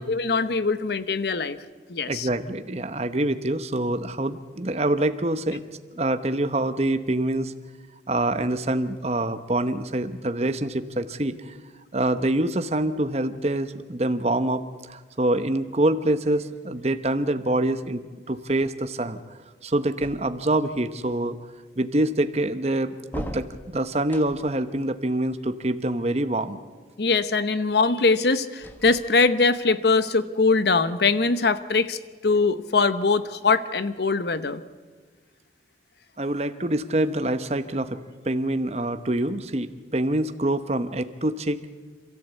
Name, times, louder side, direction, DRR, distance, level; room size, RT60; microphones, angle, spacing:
voice 1, 0.0-1.6 1.9-2.3 27.0-34.6, left 4 dB, 65° left, 13 dB, 0.9 m, -22 dB
voice 2, 2.1-5.6 6.0-7.5 8.1-11.5 11.9-18.0 18.3-19.2 19.6-21.4 21.8-26.6 36.2-38.0 38.2-39.7 39.9-41.6, right 1 dB, 35° right, 10 dB, 0.9 m, -25 dB
sound 1, 20.0-20.8 23.1-24.7 28.6-29.5, equal, 10° left, 1.1 m, -39 dB
27.5 x 13.5 x 8.1 m, 1.4 s
head